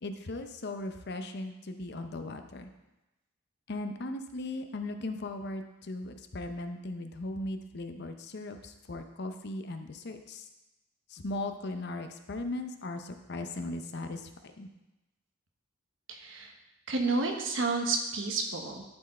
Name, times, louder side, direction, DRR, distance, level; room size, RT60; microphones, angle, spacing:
voice 1, 0.0-2.7 3.7-10.5 11.1-14.7, left 2 dB, 55° left, 7 dB, 0.6 m, -38 dB
voice 2, 16.1-16.5 16.9-18.8, right 3 dB, 65° right, 3 dB, 1.1 m, -30 dB
11.5 x 4.5 x 4.3 m, 0.99 s
head